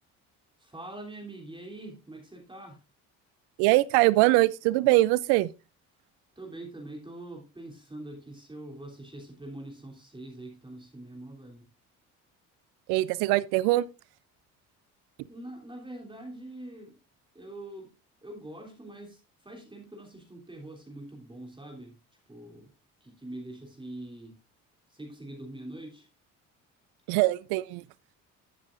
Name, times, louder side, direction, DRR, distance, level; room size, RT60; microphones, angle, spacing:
voice 1, 0.6-2.8 6.3-11.7 15.3-17.0 17.3-17.9 18.2-22.0 22.3-22.7 23.0-24.4 24.9-26.1, right 1 dB, 15° right, 3.1 m, -44 dB
voice 2, 3.6-5.5 12.9-13.9 27.1-27.8, right 19 dB, 85° right, 0.5 m, -22 dB
14.5 x 7.4 x 2.5 m
supercardioid pair, 65°, 38 cm